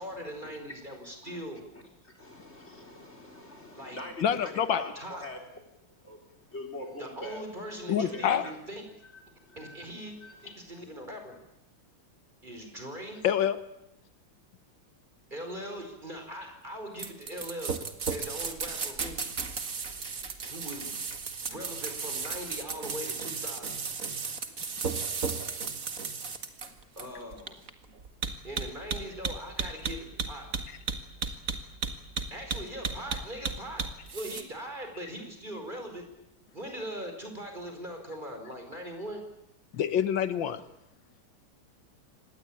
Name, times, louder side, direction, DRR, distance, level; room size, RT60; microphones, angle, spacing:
voice 1, 0.0-1.6 3.7-4.1 4.9-5.3 7.0-8.8 9.6-10.1 10.4-11.3 12.4-13.3 15.3-17.8 18.1-19.3 20.4-21.0 21.4-23.8 27.0-27.6 28.4-30.5 32.3-36.1 36.5-39.2, equal, 25° right, 5 dB, 4.9 m, -41 dB
voice 2, 1.7-5.4 6.0-7.4 7.9-8.5 9.0-10.8, left 1 dB, 35° left, 3 dB, 4.3 m, -44 dB
voice 3, 4.2-4.8 7.9-8.4 13.2-13.6 39.7-40.6, left 9 dB, 85° left, 12 dB, 1.9 m, -26 dB
sound 1, 17.0-34.4, right 5 dB, 45° right, 2.1 m, -34 dB
26.0 x 19.5 x 8.7 m, 0.85 s
omnidirectional pair, 2.0 m